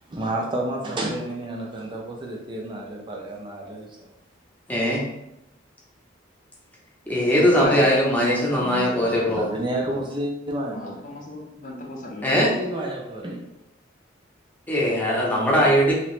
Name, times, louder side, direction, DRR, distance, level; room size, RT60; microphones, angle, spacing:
voice 1, 0.1-4.1 9.3-11.0 12.3-13.4, right 1 dB, 25° right, -1 dB, 0.4 m, -30 dB
voice 2, 4.7-5.0 7.1-9.5 12.2-12.5 14.7-15.9, equal, 10° left, -4 dB, 0.8 m, -20 dB
voice 3, 7.5-9.6 10.6-12.6, left 2 dB, 45° left, -1 dB, 0.7 m, -36 dB
3.0 x 2.9 x 3.1 m, 0.87 s
head